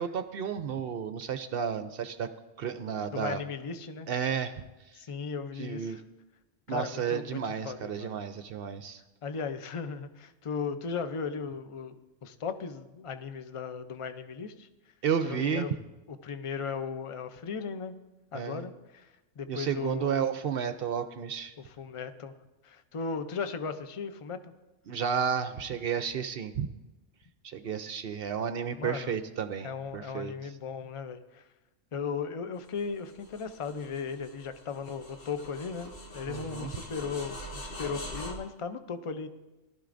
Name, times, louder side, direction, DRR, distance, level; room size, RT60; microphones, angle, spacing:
voice 1, 0.0-2.3 2.6-3.4 4.1-4.6 5.6-6.0 6.7-9.0 15.0-15.7 18.3-18.7 19.5-21.5 24.9-26.7 27.4-30.3 36.3-36.7, right 7 dB, 60° right, 10 dB, 0.7 m, -32 dB
voice 2, 3.1-4.1 4.9-6.0 6.7-8.2 9.2-14.7 15.2-15.7 16.1-17.9 18.3-20.2 21.6-22.3 22.6-24.5 28.8-29.1 29.6-31.5 31.9-39.3, left 5 dB, 40° left, 9 dB, 0.5 m, -37 dB
sound 1, 32.7-38.3, left 1 dB, 85° left, 2.1 m, -43 dB
18.5 x 12.0 x 2.6 m, 1.1 s
omnidirectional pair, 1.3 m